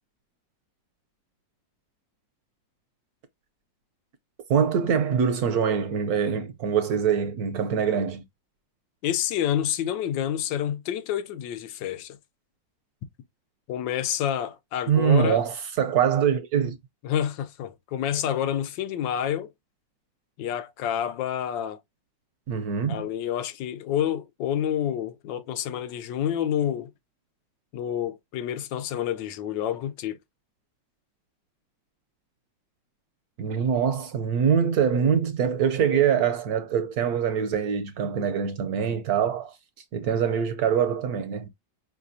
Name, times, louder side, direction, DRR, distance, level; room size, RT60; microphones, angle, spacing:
voice 1, 4.5-8.3 14.9-16.8 22.5-23.0 33.4-39.5 39.9-41.5, right 7 dB, 70° right, 1.0 m, -24 dB
voice 2, 9.0-12.2 13.7-15.4 17.0-19.5 20.4-21.8 22.9-26.9 27.7-30.2, left 10 dB, 85° left, 1.3 m, -28 dB
4.8 x 3.3 x 2.6 m
omnidirectional pair, 2.0 m